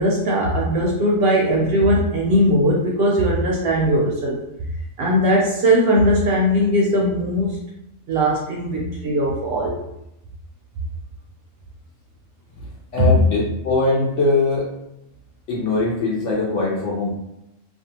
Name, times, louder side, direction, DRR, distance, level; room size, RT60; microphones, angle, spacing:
voice 1, 0.0-4.4 5.0-7.6 8.1-9.7 13.0-13.2, equal, 65° right, -2 dB, 0.6 m, -19 dB
voice 2, 12.9-14.7 15.5-17.1, left 3 dB, 70° left, -3 dB, 0.9 m, -21 dB
2.5 x 2.3 x 2.8 m, 0.85 s
omnidirectional pair, 1.3 m